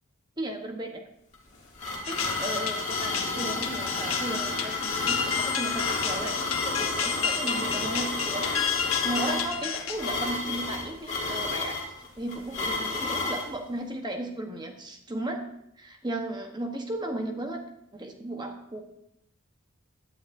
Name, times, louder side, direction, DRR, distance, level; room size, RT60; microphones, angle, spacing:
voice 1, 0.4-1.0 2.1-8.5 8.9-11.8 12.2-15.5 15.8-17.6 17.9-18.8, right 1 dB, 20° right, 4 dB, 1.0 m, -35 dB
sound 1, 1.3-13.5, left 3 dB, 35° left, 2.3 m, -31 dB
sound 2, 2.0-10.3, left 7 dB, 75° left, 1.0 m, -31 dB
16.5 x 10.5 x 2.6 m, 0.78 s
head